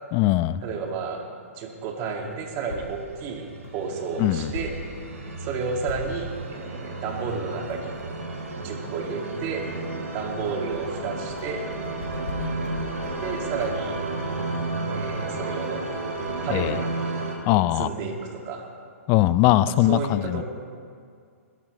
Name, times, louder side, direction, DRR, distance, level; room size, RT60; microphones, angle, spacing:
voice 1, 0.1-0.6 4.2-4.5 16.5-16.8 17.5-17.9 19.1-20.4, left 15 dB, 30° left, 17 dB, 0.4 m, -21 dB
voice 2, 0.6-1.2 1.5-3.5 3.7-4.7 5.4-7.9 8.6-9.7 10.1-11.6 13.2-13.9 14.9-15.8 16.4-16.9 17.8-18.7 19.7-20.4, right 5 dB, 35° right, 1 dB, 2.1 m, -31 dB
sound 1, 2.2-17.1, left 3 dB, 75° left, 2.3 m, -42 dB
sound 2, 3.0-17.3, right 3 dB, 80° right, 2.6 m, -32 dB
20.5 x 12.0 x 3.1 m, 2.2 s
hypercardioid pair, 125°, 8 cm